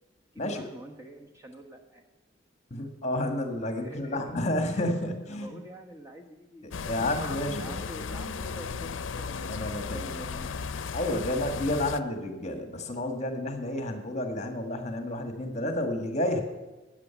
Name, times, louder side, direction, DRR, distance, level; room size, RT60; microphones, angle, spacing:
voice 1, 0.3-2.0 3.8-4.3 4.6-4.9 5.3-7.0 7.5-9.5 9.8-10.5, right 1 dB, 15° right, 2 dB, 1.2 m, -46 dB
voice 2, 2.7-5.6 6.6-7.7 9.5-10.1 10.9-16.4, left 1 dB, 35° left, 6 dB, 1.6 m, -30 dB
sound 1, 6.7-12.0, left 5 dB, 70° left, 0.5 m, -35 dB
13.5 x 8.9 x 7.0 m, 1.1 s
head